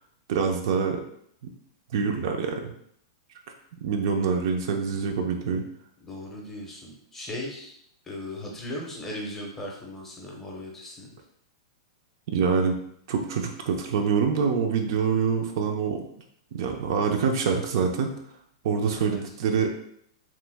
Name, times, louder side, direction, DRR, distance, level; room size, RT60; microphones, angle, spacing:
voice 1, 0.3-1.0 1.9-2.7 3.8-5.6 12.3-12.8 13.1-16.1 16.5-18.1 18.6-19.7, right 6 dB, 55° right, 3 dB, 0.4 m, -25 dB
voice 2, 6.0-7.7 8.0-11.1 19.0-19.2, left 1 dB, 10° left, -2 dB, 0.6 m, -37 dB
3.0 x 2.0 x 3.3 m, 0.69 s
supercardioid pair, 155°, 3 cm